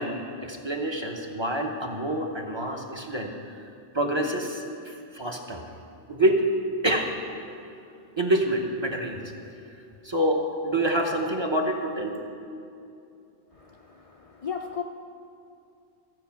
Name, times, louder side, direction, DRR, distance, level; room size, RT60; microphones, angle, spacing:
voice 1, 0.0-3.6 3.9-5.6 6.1-6.4 6.8-7.3 8.2-9.2 10.0-12.2, right 1 dB, 25° right, 1 dB, 1.0 m, -27 dB
voice 2, 13.5-14.8, left 7 dB, 45° left, 2 dB, 0.5 m, -36 dB
14.0 x 8.3 x 5.9 m, 2.6 s
omnidirectional pair, 1.1 m